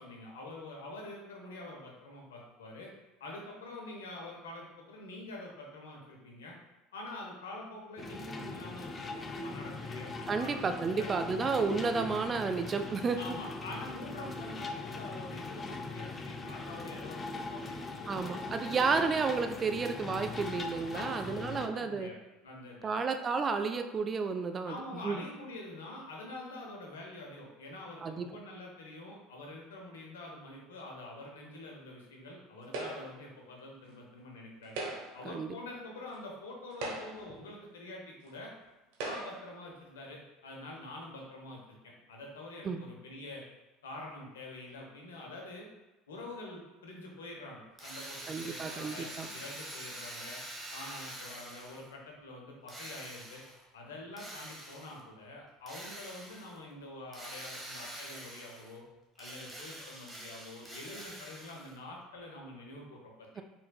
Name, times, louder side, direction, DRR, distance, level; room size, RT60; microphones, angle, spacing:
voice 1, 0.0-2.9 3.2-6.5 6.9-11.1 13.1-19.0 20.9-23.1 24.7-34.7 35.1-38.5 39.1-43.4 43.8-45.7 46.1-50.4 50.7-53.4 53.7-58.8 59.2-63.4, left 2 dB, 80° left, -1 dB, 0.9 m, -46 dB
sound 1, 8.0-21.7, left 3 dB, 30° left, 0.4 m, -41 dB
voice 2, 10.3-13.4 18.1-22.1 22.8-25.2 28.0-28.3 35.2-35.5 42.6-42.9 48.3-49.3 63.4-63.5, right 4 dB, 35° right, 7 dB, 0.4 m, -32 dB
sound 2, 32.7-33.3 34.6-35.3 36.1-36.2 36.7-37.4 38.3-38.4 38.9-39.5, right 2 dB, 65° right, 0.9 m, -39 dB
Drill, 47.8-51.9 52.7-53.6 54.2-55.0 55.7-56.6 57.1-58.8 59.1-61.8, right 1 dB, 10° right, 1.1 m, -46 dB
4.2 x 3.8 x 2.3 m, 1.1 s
hypercardioid pair, 70°, 0 cm